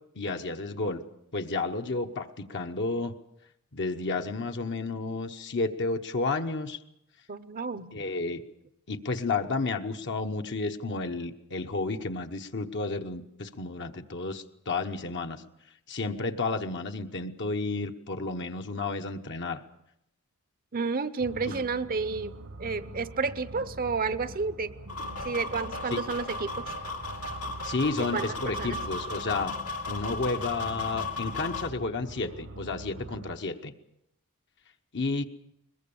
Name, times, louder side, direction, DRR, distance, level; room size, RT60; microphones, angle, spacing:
voice 1, 0.2-1.0 1.3-3.1 3.7-6.8 7.9-8.4 8.9-15.4 15.9-19.6 21.5-21.6 25.9-26.0 27.6-29.6 29.9-33.7 34.9-35.2, left 3 dB, 55° left, 5 dB, 1.0 m, -31 dB
voice 2, 7.3-8.1 20.7-24.7 25.2-26.6 28.1-28.3 28.6-28.8, right 4 dB, 40° right, 13 dB, 0.8 m, -31 dB
sound 1, 21.2-33.4, right 2 dB, 60° right, 1.2 m, -44 dB
sound 2, 24.9-31.7, left 3 dB, 85° left, 2.5 m, -36 dB
22.0 x 21.0 x 7.1 m, 0.80 s
head